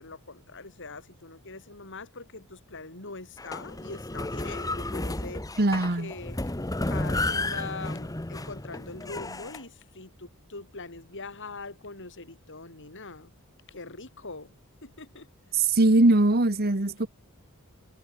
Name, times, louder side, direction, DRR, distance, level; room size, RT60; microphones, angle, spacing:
voice 1, 0.0-5.5 5.9-6.5 6.8-13.3 13.7-14.5 14.8-15.3, left 3 dB, 55° left, 4.4 m, -42 dB
sound 1, 3.4-9.6, left 2 dB, 15° left, 1.1 m, -32 dB
voice 2, 5.6-6.1 15.6-17.1, right 2 dB, 45° right, 1.6 m, -21 dB
head